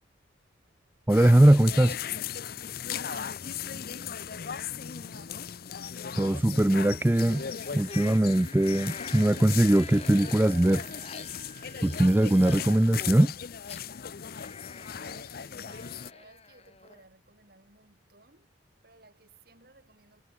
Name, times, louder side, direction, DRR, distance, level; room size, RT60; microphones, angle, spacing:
sound 1, 1.1-16.1, left 8 dB, 50° left, 0.6 m, -38 dB
voice 1, 1.1-2.0 6.2-7.4 7.7-10.8 11.8-13.3, right 1 dB, 10° right, 0.4 m, -21 dB
voice 2, 2.9-5.5 14.9-18.5 18.8-20.2, right 2 dB, 55° right, 6.6 m, -57 dB
Wind instrument woodwind instrument, 7.0-13.3, right 7 dB, 35° right, 3.1 m, -53 dB
sound 2, 7.8-17.0, left 4 dB, 30° left, 1.9 m, -46 dB
head